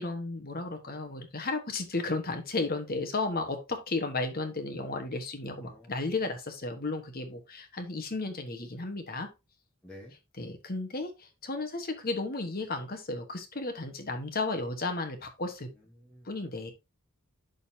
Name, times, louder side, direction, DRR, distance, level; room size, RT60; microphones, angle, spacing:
voice 1, 0.0-9.3 10.4-15.7 16.2-16.7, left 3 dB, 45° left, 7 dB, 1.3 m, -34 dB
voice 2, 5.6-6.3 9.8-10.1 15.7-16.3, equal, 5° left, -3 dB, 1.4 m, -51 dB
11.5 x 4.0 x 2.8 m, 0.25 s
head